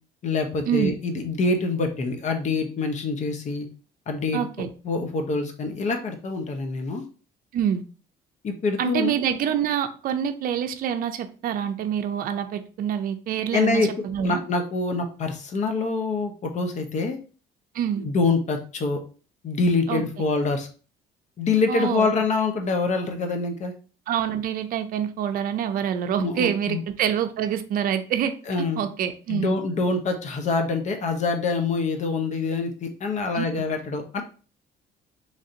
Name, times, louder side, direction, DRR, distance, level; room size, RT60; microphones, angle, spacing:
voice 1, 0.2-3.7 4.1-7.0 8.4-9.1 13.5-13.9 14.2-17.2 18.0-19.0 19.4-20.7 21.4-23.7 26.2-26.8 28.5-28.8 29.3-34.2, left 3 dB, 45° left, 5 dB, 0.8 m, -25 dB
voice 2, 4.3-4.7 7.5-7.8 8.8-14.4 17.7-18.0 19.9-20.0 21.7-22.1 24.1-28.3 28.8-29.6 33.3-33.5, right 9 dB, 55° right, 8 dB, 0.5 m, -26 dB
3.2 x 2.6 x 3.8 m, 0.37 s
cardioid pair, 110°, 17 cm